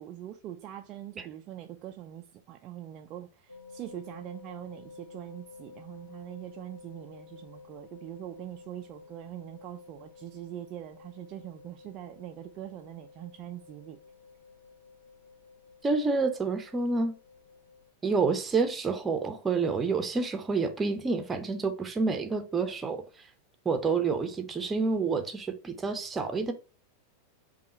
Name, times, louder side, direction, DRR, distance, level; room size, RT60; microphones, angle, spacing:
voice 1, 0.0-14.0, right 12 dB, 35° right, 0.4 m, -43 dB
sound 1, 3.5-17.9, left 5 dB, 85° left, 0.9 m, -52 dB
voice 2, 15.8-17.1 18.0-23.0 23.6-26.5, right 4 dB, 15° right, 0.8 m, -28 dB
5.3 x 2.4 x 4.2 m
figure-of-eight pair, 90°, 0 cm